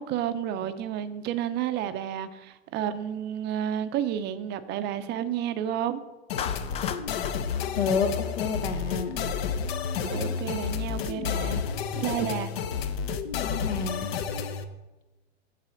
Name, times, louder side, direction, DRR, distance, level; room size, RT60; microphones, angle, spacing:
voice 1, 0.0-6.0 10.0-11.6 12.0-12.5, right 10 dB, 35° right, 0.5 m, -31 dB
sound 1, 6.3-14.6, left 7 dB, 65° left, 0.8 m, -30 dB
Clapping, 6.4-8.8, left 8 dB, 20° left, 0.4 m, -37 dB
voice 2, 7.7-9.1 13.4-14.1, left 5 dB, 85° left, 1.4 m, -29 dB
7.5 x 5.5 x 6.3 m
hypercardioid pair, 115°, 32 cm